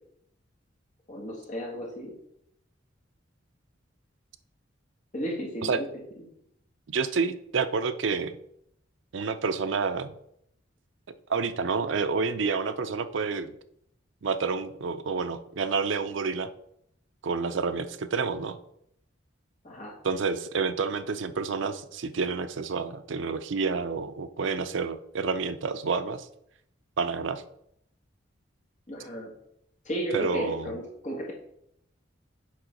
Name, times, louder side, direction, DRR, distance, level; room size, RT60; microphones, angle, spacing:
voice 1, 1.1-2.1 5.1-5.9 19.6-19.9 28.9-29.3 29.9-31.3, equal, 40° left, -3 dB, 1.6 m, -34 dB
voice 2, 6.9-8.4 9.1-10.1 11.3-13.6 14.2-16.5 17.2-18.6 20.0-26.3 27.0-27.4 30.1-30.7, right 5 dB, 70° right, 11 dB, 0.5 m, -29 dB
7.5 x 3.8 x 5.1 m, 0.75 s
head